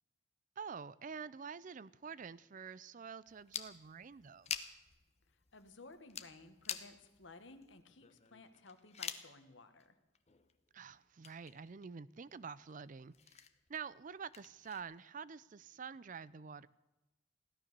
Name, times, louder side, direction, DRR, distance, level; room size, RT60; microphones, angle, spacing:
voice 1, 0.6-4.5 10.7-13.4 13.7-16.7, right 6 dB, 40° right, 0.4 m, -48 dB
sound 1, 3.3-9.3 9.8-9.9 10.2-10.7 11.0-11.9 12.2-14.8, left 8 dB, 35° left, 0.9 m, -48 dB
voice 2, 5.3-9.9, left 3 dB, 70° left, 1.5 m, -57 dB
16.5 x 12.5 x 6.8 m
head